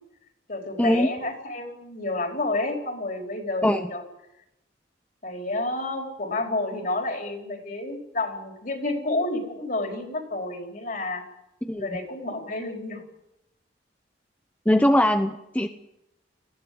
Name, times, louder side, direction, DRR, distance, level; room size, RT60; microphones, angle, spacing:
voice 1, 0.5-4.0 5.2-11.2 11.7-13.0, left 2 dB, 45° left, 3 dB, 4.6 m, -30 dB
voice 2, 11.6-12.0 14.7-15.7, left 1 dB, 10° left, 6 dB, 0.9 m, -21 dB
19.5 x 15.5 x 9.5 m, 0.87 s
head